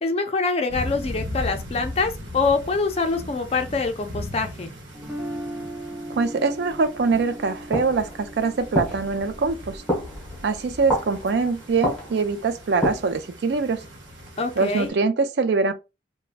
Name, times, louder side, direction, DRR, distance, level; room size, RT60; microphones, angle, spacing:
voice 1, 0.0-4.7 14.4-14.9, left 4 dB, 35° left, 0.4 m, -25 dB
sound 1, 0.7-14.9, left 1 dB, 90° right, 1.0 m, -38 dB
Guitar, 4.9-11.0, right 1 dB, 10° right, 0.7 m, -38 dB
voice 2, 6.2-9.8 10.4-13.8 14.6-15.7, right 4 dB, 60° right, 0.4 m, -23 dB
sound 2, 7.1-13.3, left 1 dB, 5° left, 1.2 m, -31 dB
3.3 x 2.1 x 2.4 m
head